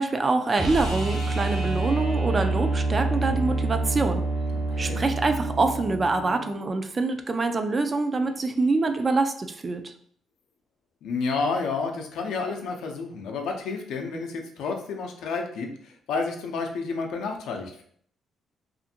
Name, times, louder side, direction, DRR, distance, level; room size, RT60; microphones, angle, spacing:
voice 1, 0.0-4.2 4.8-9.9, right 3 dB, 35° right, 7 dB, 0.3 m, -25 dB
sound 1, 0.5-6.5 9.0-9.1, right 2 dB, 65° right, 0.9 m, -27 dB
voice 2, 4.5-5.0 11.0-17.8, left 4 dB, 85° left, 3 dB, 0.5 m, -30 dB
2.5 x 2.5 x 2.7 m, 0.62 s
cardioid pair, 90°, 0 cm